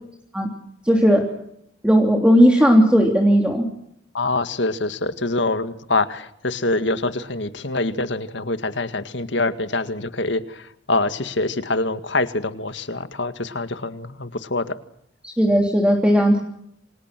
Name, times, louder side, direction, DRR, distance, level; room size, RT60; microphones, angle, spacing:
voice 1, 0.8-1.2 1.8-3.6 15.4-16.4, equal, 5° right, 1 dB, 3.2 m, -16 dB
voice 2, 4.1-14.8, left 2 dB, 70° left, 10 dB, 2.0 m, -25 dB
28.5 x 26.5 x 6.1 m, 0.73 s
head